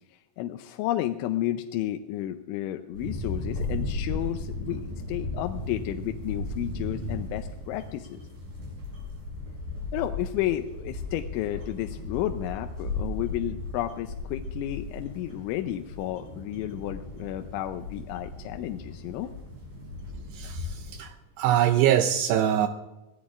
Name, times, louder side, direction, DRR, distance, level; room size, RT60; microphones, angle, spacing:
voice 1, 0.1-8.2 9.9-19.3, left 13 dB, 85° left, 6 dB, 3.0 m, -32 dB
sound 1, 2.9-21.0, left 2 dB, 45° right, 8.3 m, -36 dB
voice 2, 20.3-22.7, right 11 dB, 80° right, 8 dB, 2.4 m, -24 dB
23.0 x 16.5 x 2.5 m, 1.0 s
omnidirectional pair, 5.3 m